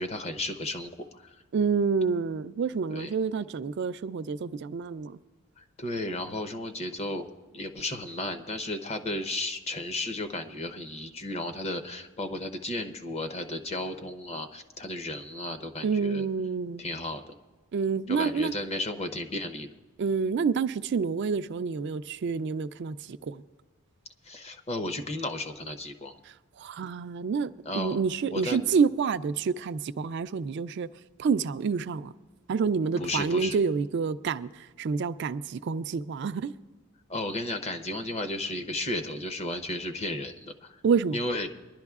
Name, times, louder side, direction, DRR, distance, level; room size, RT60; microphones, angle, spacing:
voice 1, 0.0-1.4 2.9-3.1 5.6-7.3 7.5-16.3 16.8-17.3 18.1-19.7 24.2-26.2 27.7-28.0 28.3-28.7 33.0-33.6 37.1-40.8 41.1-41.5, left 1 dB, 30° left, 0.7 m, -34 dB
voice 2, 1.5-5.2 15.8-16.8 17.7-18.5 20.0-23.4 26.6-30.9 31.2-32.1 32.5-36.5 40.8-41.2, right 5 dB, 55° right, 0.3 m, -28 dB
24.0 x 11.5 x 2.4 m
head